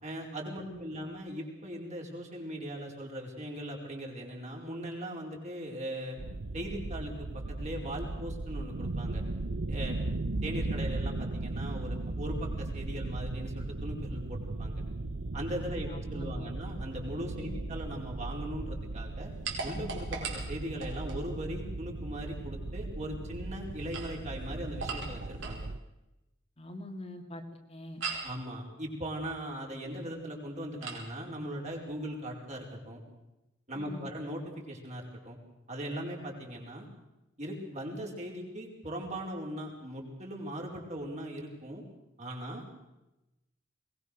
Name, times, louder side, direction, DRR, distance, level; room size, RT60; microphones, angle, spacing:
voice 1, 0.0-6.2 6.5-9.2 9.7-10.0 10.4-14.7 15.3-19.3 19.6-25.7 28.2-33.0 33.7-35.4 35.7-36.8 37.4-41.8 42.2-42.7, equal, 35° right, 0 dB, 4.9 m, -39 dB
voice 2, 0.6-1.0 15.7-16.5 17.4-17.6 26.6-27.4 27.7-28.0 33.7-34.1, left 1 dB, 30° left, 3 dB, 2.2 m, -44 dB
sound 1, 6.2-25.8, right 2 dB, 90° right, 0.9 m, -37 dB
sound 2, 19.4-21.2 23.7-25.7 28.0-28.4 30.8-31.1, right 4 dB, 70° right, 4.9 m, -39 dB
22.0 x 20.0 x 6.7 m, 0.95 s
head